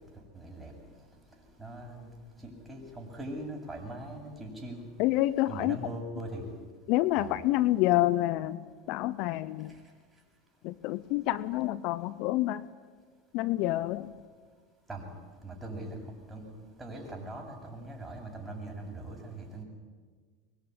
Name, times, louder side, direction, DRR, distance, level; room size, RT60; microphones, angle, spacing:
voice 1, 0.3-0.7 1.6-2.1 2.4-4.8 5.5-6.4 7.2-7.3 14.9-15.0 15.4-16.0 16.3-16.4 16.8-19.6, right 1 dB, 15° right, 1 dB, 8.0 m, -41 dB
voice 2, 5.0-5.8 6.9-8.6 8.9-9.7 10.6-12.6 13.3-14.1, left 16 dB, 55° left, 17 dB, 0.8 m, -28 dB
24.5 x 22.0 x 10.0 m, 1.5 s
hypercardioid pair, 90°, 0 cm